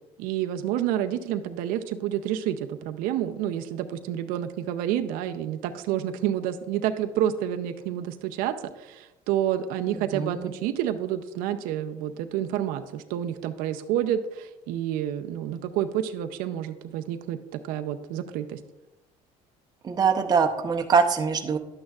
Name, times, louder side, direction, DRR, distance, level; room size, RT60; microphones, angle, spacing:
voice 1, 0.2-18.6, right 11 dB, 85° right, 7 dB, 0.5 m, -29 dB
voice 2, 10.1-10.5 19.8-21.6, right 5 dB, 25° right, 4 dB, 0.7 m, -23 dB
11.5 x 8.7 x 2.4 m, 1.0 s
cardioid pair, 140°, 14 cm